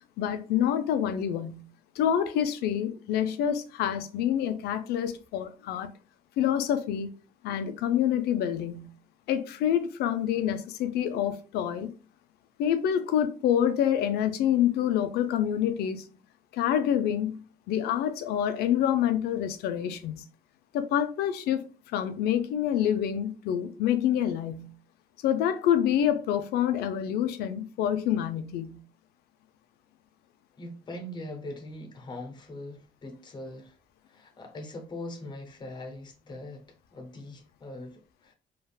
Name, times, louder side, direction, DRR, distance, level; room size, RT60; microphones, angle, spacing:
voice 1, 0.2-1.6 2.0-5.9 6.4-7.1 7.4-8.9 9.3-11.9 12.6-16.1 16.5-17.4 17.7-20.2 20.7-21.6 21.9-24.7 25.2-28.8, left 10 dB, 90° left, 0.4 m, -27 dB
voice 2, 30.6-33.8 34.1-38.3, left 1 dB, 30° left, 0.6 m, -41 dB
3.4 x 2.3 x 2.2 m
cardioid pair, 140°, 16 cm